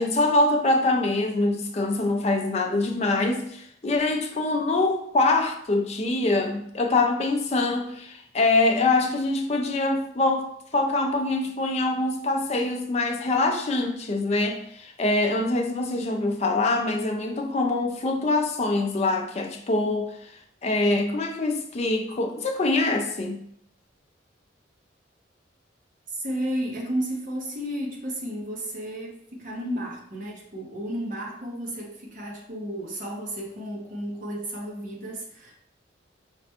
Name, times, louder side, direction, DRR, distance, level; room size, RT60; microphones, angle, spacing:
voice 1, 0.0-20.3 20.6-23.4, left 2 dB, 35° left, 0.4 m, -24 dB
voice 2, 26.1-35.5, equal, 45° right, 0.8 m, -33 dB
4.9 x 2.2 x 2.8 m
head